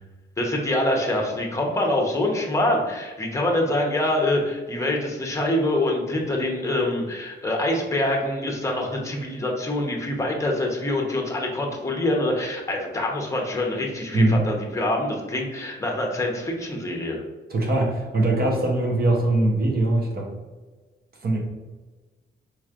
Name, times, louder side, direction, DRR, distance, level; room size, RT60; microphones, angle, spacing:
voice 1, 0.4-17.2, left 1 dB, 15° left, 0 dB, 0.8 m, -25 dB
voice 2, 14.1-14.5 17.5-20.3 21.2-21.4, right 2 dB, 50° right, -1 dB, 0.9 m, -21 dB
4.5 x 3.1 x 2.5 m, 1.3 s
cardioid pair, 120°, 20 cm